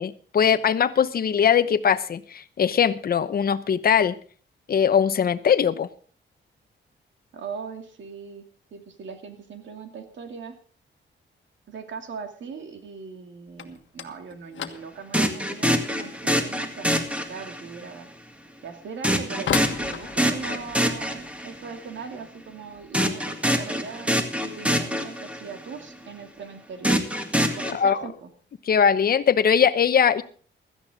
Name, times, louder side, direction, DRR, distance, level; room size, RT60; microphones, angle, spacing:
voice 1, 0.0-4.2 4.7-5.9 27.6-28.0 28.7-30.2, left 7 dB, 50° left, 12 dB, 0.9 m, -21 dB
voice 2, 7.3-10.6 11.7-18.1 18.6-24.1 24.4-27.0 27.5-28.3, right 5 dB, 75° right, 6 dB, 2.5 m, -39 dB
sound 1, 13.5-24.2 24.5-25.1 25.4-25.7 26.0-26.1 26.8-26.9 27.8-28.0 28.4-28.8, left 8 dB, 75° left, 1.5 m, -39 dB
sound 2, 15.1-17.8 19.0-21.7 22.9-25.6 26.8-27.7, equal, 5° right, 1.8 m, -25 dB
16.5 x 13.5 x 3.7 m, 0.42 s
wide cardioid pair, 135°, 20 cm